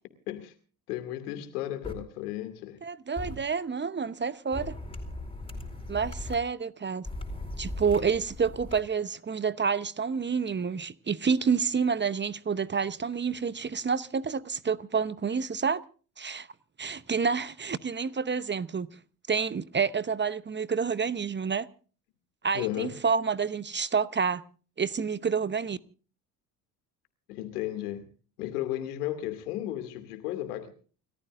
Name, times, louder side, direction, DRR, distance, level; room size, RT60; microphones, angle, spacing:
voice 1, 0.9-2.8 22.5-23.0 27.3-28.1 28.4-30.7, left 13 dB, 80° left, 2.6 m, -34 dB
sound 1, 1.8-1.9 3.2-3.4 4.5-6.4 7.0-8.8, left 2 dB, 10° left, 4.7 m, -38 dB
voice 2, 2.8-4.7 5.9-7.1 7.6-15.8 16.2-16.5 16.8-18.9 19.3-21.7 22.4-24.4 24.8-25.8, right 6 dB, 25° right, 0.9 m, -28 dB
29.5 x 14.0 x 2.6 m
hypercardioid pair, 60°, 45 cm